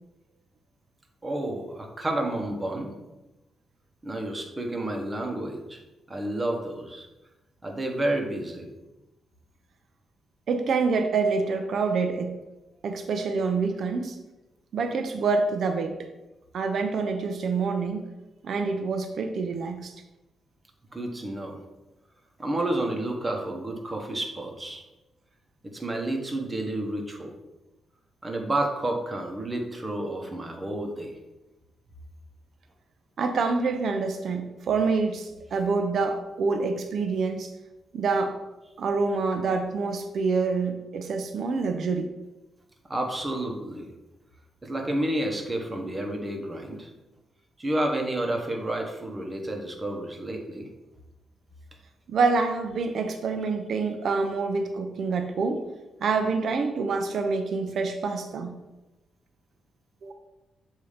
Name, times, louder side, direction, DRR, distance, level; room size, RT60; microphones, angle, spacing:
voice 1, 1.2-2.9 4.0-5.8 6.1-7.1 7.6-8.7 20.9-21.6 22.4-24.8 25.6-27.3 28.2-31.1 42.9-43.9 44.6-46.9 47.6-50.7, right 1 dB, 20° right, 2 dB, 1.0 m, -30 dB
voice 2, 10.5-12.4 12.8-14.2 14.7-16.1 16.5-18.0 18.4-19.9 33.2-37.5 37.9-38.4 38.8-42.1 52.1-55.6 56.0-58.5 60.0-60.1, right 4 dB, 65° right, 7 dB, 0.5 m, -26 dB
7.0 x 2.7 x 5.0 m, 1.0 s
cardioid pair, 105°, 0 cm